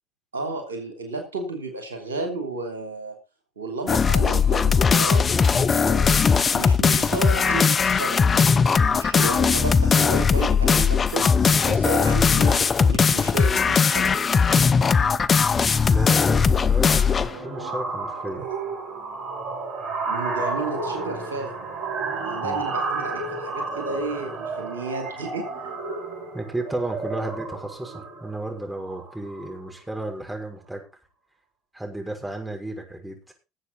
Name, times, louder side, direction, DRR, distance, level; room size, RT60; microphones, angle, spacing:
voice 1, 0.3-3.2 3.6-6.2 6.5-8.2 8.9-11.3 11.6-14.1 18.3-18.4 20.1-21.7 22.2-25.7, right 3 dB, 85° right, 4 dB, 3.1 m, -32 dB
sound 1, 3.9-17.3, left 5 dB, 30° left, 0.8 m, -19 dB
sound 2, 13.9-14.0 14.3-14.6 14.8-29.7, right 3 dB, 60° right, 6.7 m, -32 dB
voice 2, 15.6-18.5 22.4-22.6 26.3-30.8 31.7-33.3, right 2 dB, 10° right, 2 dB, 6.2 m, -33 dB
19.5 x 8.1 x 4.1 m, 0.29 s
hypercardioid pair, 65°, 0 cm